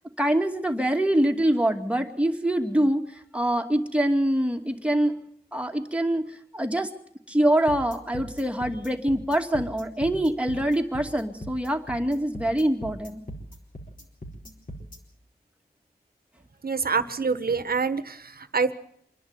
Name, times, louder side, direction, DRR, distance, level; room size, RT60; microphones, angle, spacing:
voice 1, 0.2-5.2 5.5-6.9 7.3-13.2, right 1 dB, 5° right, 3 dB, 2.4 m, -24 dB
sound 1, 7.7-15.0, equal, 55° left, 4.4 m, -40 dB
voice 2, 16.6-18.7, right 5 dB, 65° right, 12 dB, 1.4 m, -26 dB
26.0 x 11.0 x 9.7 m, 0.69 s
wide cardioid pair, 65°, 17 cm